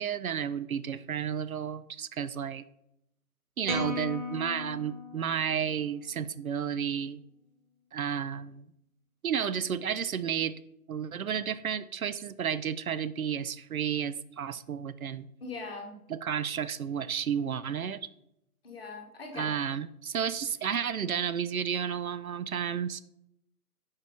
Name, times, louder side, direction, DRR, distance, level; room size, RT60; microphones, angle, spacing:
voice 1, 0.0-2.6 3.6-7.2 7.9-8.7 9.2-10.6 10.9-15.3 16.1-18.1 19.3-23.0, right 8 dB, 65° right, 14 dB, 0.5 m, -32 dB
sound 1, 3.6-6.0, left 2 dB, 25° right, 0.9 m, -37 dB
voice 2, 15.4-16.0 18.6-19.5, left 3 dB, 40° left, 1 dB, 1.4 m, -40 dB
7.1 x 4.8 x 3.6 m, 0.80 s
figure-of-eight pair, 145°, 46 cm